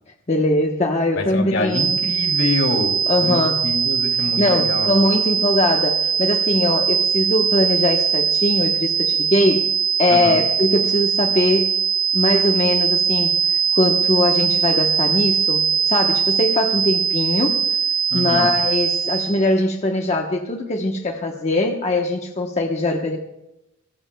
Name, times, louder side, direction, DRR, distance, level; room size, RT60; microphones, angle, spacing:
voice 1, 0.3-2.0 3.1-3.6 4.4-9.7 10.0-11.7 12.1-13.4 13.7-17.6 18.1-23.2, left 1 dB, 35° left, 1 dB, 1.1 m, -21 dB
voice 2, 1.2-4.9 10.1-10.4 18.1-18.6, left 2 dB, 70° left, 3 dB, 2.6 m, -26 dB
sound 1, 1.7-19.4, right 7 dB, 90° right, 4.2 m, -21 dB
22.0 x 18.0 x 2.3 m, 0.89 s
head